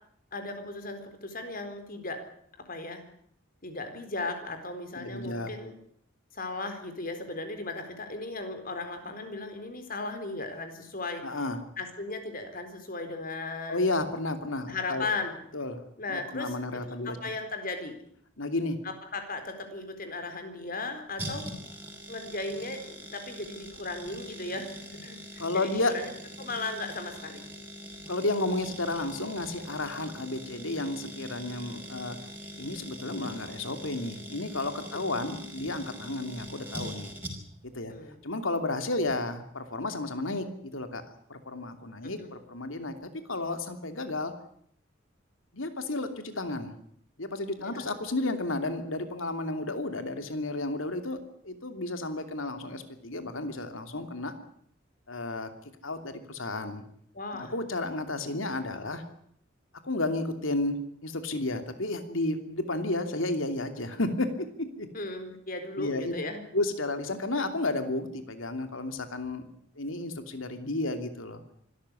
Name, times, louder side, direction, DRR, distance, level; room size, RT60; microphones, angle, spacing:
voice 1, 0.3-2.2 2.5-3.0 3.6-5.7 6.3-11.2 11.8-13.9 14.7-15.4 16.0-16.5 16.8-17.9 18.8-21.5 22.1-26.1 26.4-27.4 34.9-35.3 37.9-38.2 42.2-42.3 47.6-47.9 57.1-57.5 64.9-66.4, left 3 dB, 45° left, 7 dB, 4.3 m, -36 dB
voice 2, 5.0-5.5 11.2-11.6 13.7-15.0 15.5-15.8 16.1-17.2 18.4-18.8 25.4-25.9 28.1-32.2 32.6-37.1 37.7-37.9 38.2-40.5 40.7-41.0 41.3-44.3 45.5-46.7 47.2-51.2 51.4-54.3 55.1-55.5 55.8-56.8 57.3-59.0 59.8-60.8 61.0-64.9 65.8-66.1 66.5-69.5 69.8-71.4, left 2 dB, 75° left, 8 dB, 2.9 m, -32 dB
sound 1, 21.2-37.7 37.9-38.0, equal, 10° right, 5.1 m, -43 dB
25.0 x 13.5 x 9.8 m, 0.66 s
head